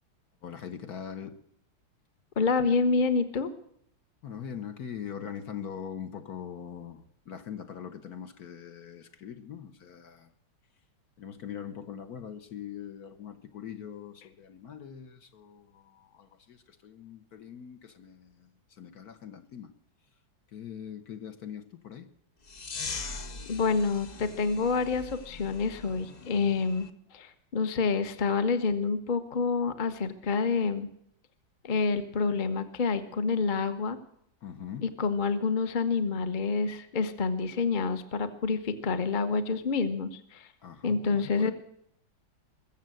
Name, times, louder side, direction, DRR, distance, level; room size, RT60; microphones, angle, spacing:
voice 1, 0.4-1.4 4.2-10.3 11.2-19.7 20.5-22.1 34.4-34.9 40.6-41.5, left 8 dB, 55° left, 8 dB, 1.5 m, -42 dB
voice 2, 2.4-3.5 23.5-30.9 31.6-34.0 34.8-40.5 40.8-41.5, left 4 dB, 35° left, 10 dB, 0.9 m, -28 dB
sound 1, 22.4-26.9, left 4 dB, 75° left, 0.4 m, -41 dB
22.0 x 7.4 x 7.7 m, 0.71 s
omnidirectional pair, 2.1 m